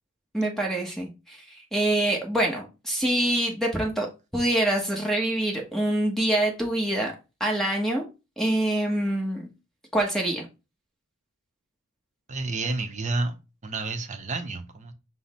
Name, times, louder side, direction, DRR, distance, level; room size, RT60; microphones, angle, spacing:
voice 1, 0.3-7.1 7.4-8.1 8.4-9.5 9.9-10.5, right 1 dB, ahead, 0 dB, 0.9 m, -25 dB
voice 2, 12.3-13.3 13.6-14.9, right 3 dB, 35° right, 7 dB, 0.6 m, -30 dB
5.6 x 2.0 x 4.1 m, 0.28 s
head